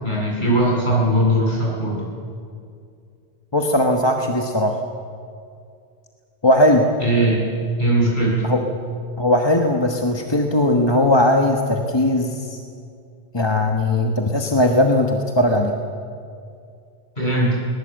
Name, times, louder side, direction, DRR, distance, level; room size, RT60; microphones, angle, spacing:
voice 1, 0.0-2.0 7.0-7.4 7.8-8.3 17.2-17.6, right 1 dB, 50° left, -5 dB, 8.3 m, -19 dB
voice 2, 3.5-4.8 6.4-6.9 8.4-8.6 9.2-12.6 13.3-15.8, left 1 dB, 25° left, 3 dB, 1.3 m, -18 dB
21.5 x 20.0 x 7.8 m, 2.3 s
omnidirectional pair, 1.1 m